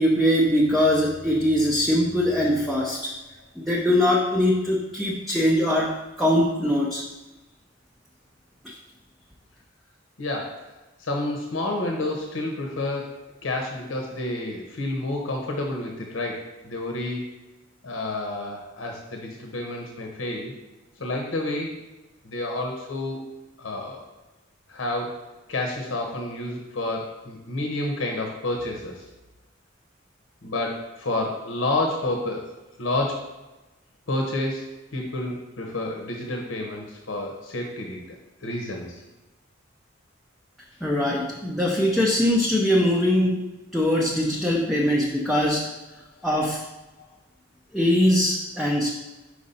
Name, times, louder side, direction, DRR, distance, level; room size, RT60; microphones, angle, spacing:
voice 1, 0.0-3.1 3.6-7.0 40.8-43.4 43.7-45.7 46.2-46.6 47.7-48.9, left 1 dB, ahead, -3 dB, 0.5 m, -22 dB
voice 2, 10.2-10.7 11.0-13.1 13.4-17.2 17.8-20.5 21.0-21.8 22.2-23.2 23.6-24.0 24.7-29.0 30.4-32.5 32.8-33.3 34.1-34.6 34.9-38.2 38.4-39.0 47.0-47.1, left 2 dB, 90° left, 1 dB, 0.9 m, -29 dB
5.2 x 4.9 x 4.1 m, 1.1 s
head